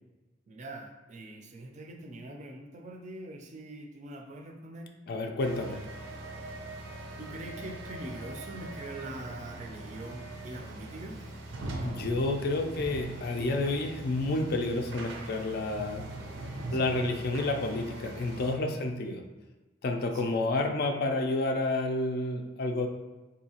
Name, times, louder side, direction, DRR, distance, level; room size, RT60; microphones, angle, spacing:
voice 1, 0.5-4.9 7.2-11.3 16.7-17.0 18.7-18.9 20.1-20.4, right 1 dB, 40° right, 3 dB, 0.4 m, -43 dB
voice 2, 5.1-5.8 11.8-16.1 16.7-19.2 19.8-22.9, left 2 dB, 55° left, 4 dB, 0.3 m, -30 dB
sound 1, 5.4-18.5, right 1 dB, 90° right, 0.6 m, -41 dB
3.8 x 2.7 x 2.8 m, 1.1 s
head